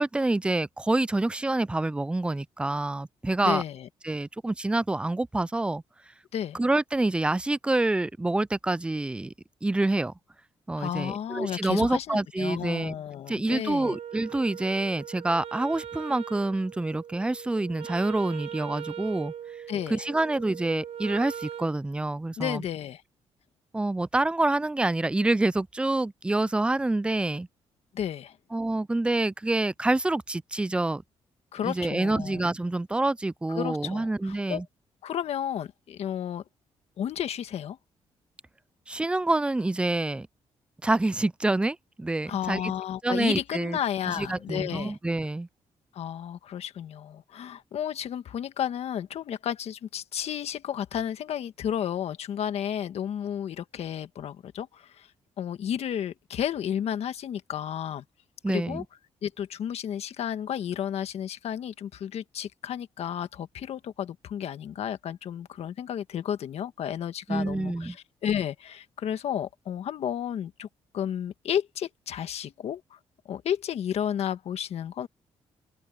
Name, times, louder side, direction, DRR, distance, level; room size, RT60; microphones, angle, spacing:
voice 1, 0.0-3.6 4.0-5.8 6.5-9.3 9.6-10.1 10.7-13.0 13.3-19.3 19.9-22.6 23.7-27.5 28.5-31.0 31.6-34.7 38.9-40.3 40.8-42.7 43.0-43.8 44.2-45.5 58.4-58.8 67.3-68.0, right 2 dB, 10° right, 0.3 m, -27 dB
voice 2, 3.4-3.9 6.3-6.6 10.8-14.0 19.7-20.0 22.4-23.0 27.9-28.4 31.5-32.5 33.5-34.6 35.0-36.4 37.0-37.8 42.3-45.0 45.9-55.1 55.4-58.0 58.5-58.8 59.2-70.7 70.9-73.0 73.2-75.1, left 9 dB, 70° left, 1.5 m, -32 dB
Wind instrument woodwind instrument, 13.8-21.8, right 9 dB, 70° right, 6.5 m, -40 dB
open air
cardioid pair, 95°, 11 cm